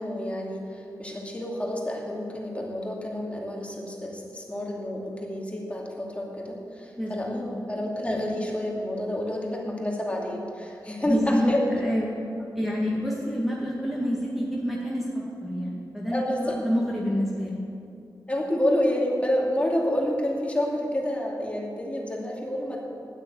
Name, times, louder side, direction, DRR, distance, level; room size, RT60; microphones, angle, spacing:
voice 1, 0.0-11.6 16.1-16.6 18.3-22.9, left 1 dB, 15° left, -2 dB, 2.6 m, -29 dB
voice 2, 11.0-11.5 11.8-12.2 12.6-17.6, equal, ahead, -5 dB, 2.0 m, -28 dB
9.6 x 9.3 x 9.4 m, 2.6 s
wide cardioid pair, 75°, 7 cm